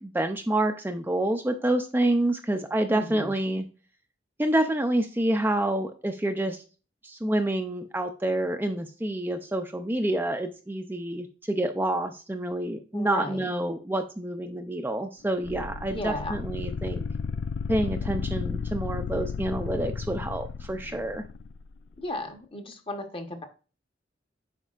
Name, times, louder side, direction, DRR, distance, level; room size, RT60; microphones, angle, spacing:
voice 1, 0.0-3.7 4.4-6.6 7.0-17.0 17.7-21.2, right 1 dB, 10° right, 5 dB, 0.5 m, -28 dB
voice 2, 2.9-3.3 12.9-13.5 15.9-16.4 22.0-23.4, left 1 dB, 30° left, 5 dB, 1.1 m, -34 dB
sound 1, 15.4-21.6, left 5 dB, 85° left, 0.4 m, -33 dB
8.0 x 5.4 x 2.4 m, 0.34 s
head